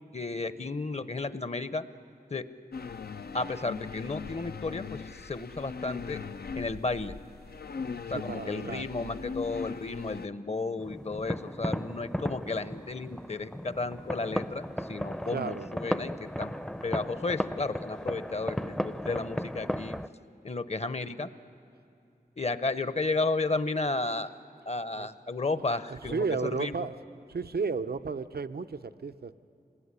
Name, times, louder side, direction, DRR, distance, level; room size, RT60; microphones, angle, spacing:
voice 1, 0.1-1.8 2.3-2.5 3.3-6.2 6.5-7.1 8.1-16.5 16.8-20.0 20.4-21.3 22.4-24.3 24.7-26.7, left 3 dB, 45° left, 13 dB, 0.9 m, -33 dB
sound 1, 2.7-10.3, left 5 dB, 80° left, 0.6 m, -40 dB
voice 2, 8.1-8.8 15.3-15.7 25.0-25.1 25.9-26.9 27.3-29.3, right 5 dB, 85° right, 11 dB, 0.7 m, -33 dB
sound 2, 10.8-20.1, equal, 5° left, 0.6 m, -35 dB
27.0 x 20.5 x 9.8 m, 2.7 s
wide cardioid pair, 65°, 16 cm